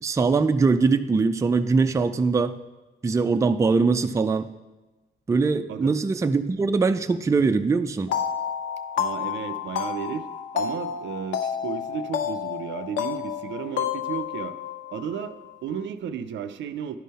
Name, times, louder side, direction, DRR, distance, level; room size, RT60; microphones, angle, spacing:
voice 1, 0.0-2.5 3.0-4.5 5.3-8.1, right 4 dB, 15° right, 9 dB, 0.4 m, -22 dB
sound 1, 8.1-15.6, left 8 dB, 70° left, 0.7 m, -30 dB
voice 2, 8.9-14.6 14.9-17.0, right 8 dB, 70° right, 11 dB, 0.5 m, -34 dB
11.0 x 3.8 x 4.2 m, 1.1 s
cardioid pair, 90°, 20 cm